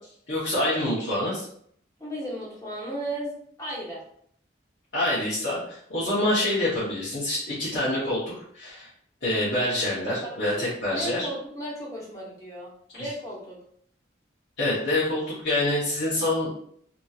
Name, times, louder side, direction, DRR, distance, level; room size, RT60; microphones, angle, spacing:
voice 1, 0.3-1.5 4.9-8.9 9.2-11.3 13.0-13.1 14.6-16.5, left 1 dB, 75° left, -10 dB, 0.9 m, -26 dB
voice 2, 2.0-4.0 10.2-10.6 10.9-13.6, right 1 dB, 20° left, -5 dB, 0.9 m, -35 dB
2.8 x 2.7 x 2.4 m, 0.64 s
head